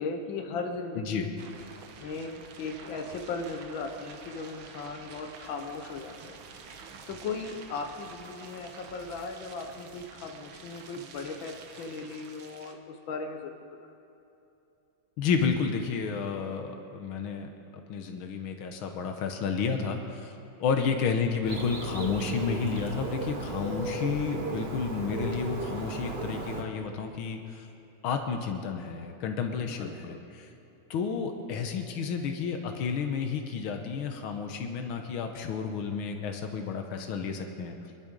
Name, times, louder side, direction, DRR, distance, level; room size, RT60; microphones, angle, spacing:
voice 1, 0.0-1.5 2.0-6.4 7.1-13.6 20.8-20.9 29.6-30.3, left 4 dB, 70° left, 5 dB, 1.8 m, -37 dB
voice 2, 1.0-1.3 15.2-17.5 17.9-27.7 28.0-30.5 30.9-37.7, left 5 dB, 90° left, 5 dB, 1.9 m, -31 dB
sound 1, 1.4-12.7, right 5 dB, 75° right, 1.8 m, -48 dB
Bird, 21.5-26.6, right 2 dB, 35° right, 1.3 m, -35 dB
24.0 x 11.5 x 5.2 m, 2.8 s
omnidirectional pair, 2.2 m